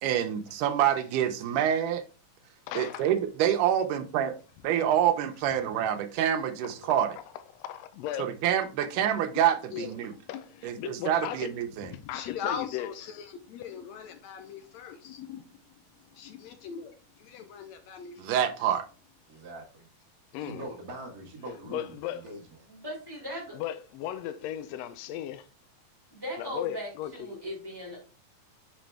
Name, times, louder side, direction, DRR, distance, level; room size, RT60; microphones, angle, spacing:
voice 1, 0.0-2.0 2.8-4.3 4.6-7.1 8.2-10.1 10.6-11.9 18.2-18.8, right 10 dB, 90° right, 2.2 m, -27 dB
voice 2, 2.7-3.1 6.9-7.0 7.5-8.3 10.3-11.5 11.8-13.1 20.3-20.7 21.5-22.2 23.5-25.5 26.4-27.3, left 11 dB, 90° left, 1.4 m, -36 dB
voice 3, 9.7-10.3 12.1-15.4 16.2-18.5, left 7 dB, 75° left, 1.8 m, -40 dB
voice 4, 19.3-19.9 20.4-22.4, right 2 dB, 40° right, 1.6 m, -43 dB
voice 5, 22.7-23.6 26.1-28.0, equal, 5° right, 3.0 m, -38 dB
5.7 x 5.1 x 3.3 m
omnidirectional pair, 3.6 m